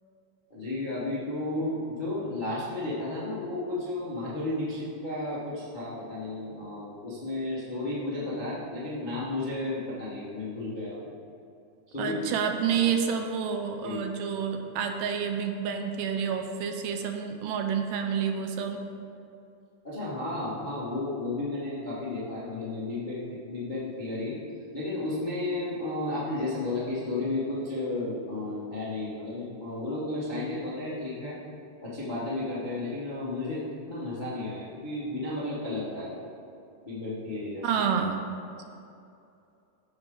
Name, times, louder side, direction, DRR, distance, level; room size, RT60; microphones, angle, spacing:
voice 1, 0.5-11.1 11.9-12.1 12.8-12.9 13.8-14.0 19.8-23.2 23.5-24.4 24.7-31.4 31.8-33.6 33.9-36.3 36.8-37.7, left 2 dB, 40° left, -9 dB, 0.6 m, -33 dB
voice 2, 12.0-18.8 37.6-38.2, right 7 dB, 85° right, 5 dB, 2.2 m, -29 dB
13.5 x 5.0 x 3.8 m, 2.6 s
omnidirectional pair, 3.8 m